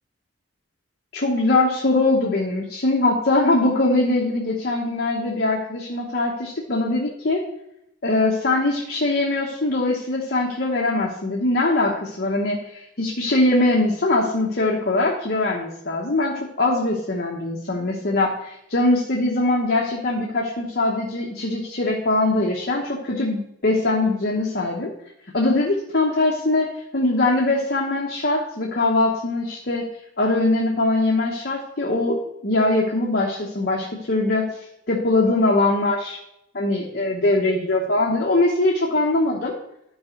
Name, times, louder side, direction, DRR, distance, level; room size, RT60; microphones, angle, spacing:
voice 1, 1.1-7.4 8.0-24.9 25.3-29.9 30.2-34.5 34.9-36.2 36.5-39.5, left 2 dB, 55° left, -2 dB, 1.1 m, -22 dB
11.5 x 5.0 x 4.4 m, 0.80 s
head